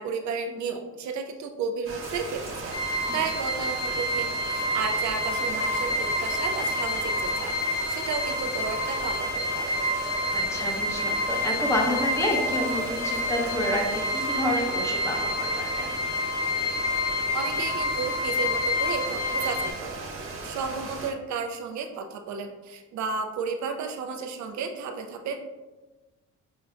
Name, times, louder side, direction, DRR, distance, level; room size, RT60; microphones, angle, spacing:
voice 1, 0.0-9.8 17.3-25.4, right 5 dB, 65° right, 5 dB, 0.5 m, -33 dB
sound 1, 1.8-21.1, right 3 dB, 45° right, 1.0 m, -38 dB
sound 2, 2.0-16.3, equal, 10° right, 1.2 m, -42 dB
sound 3, 2.7-19.7, left 1 dB, 55° left, 0.6 m, -28 dB
voice 2, 10.3-13.8 14.1-15.9, left 1 dB, 10° left, -2 dB, 0.9 m, -29 dB
6.1 x 2.2 x 2.4 m, 1.2 s
cardioid pair, 90°, 30 cm